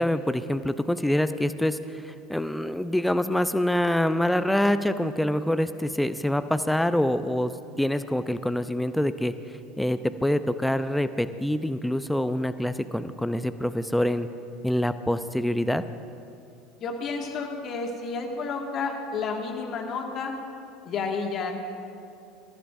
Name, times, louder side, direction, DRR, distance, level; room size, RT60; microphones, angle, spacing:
voice 1, 0.0-14.3 14.6-15.8, left 1 dB, 5° left, 11 dB, 0.6 m, -26 dB
voice 2, 16.8-20.3 20.9-21.5, left 4 dB, 40° left, 1 dB, 1.9 m, -31 dB
27.0 x 14.5 x 2.6 m, 2.6 s
figure-of-eight pair, 70°, 0 cm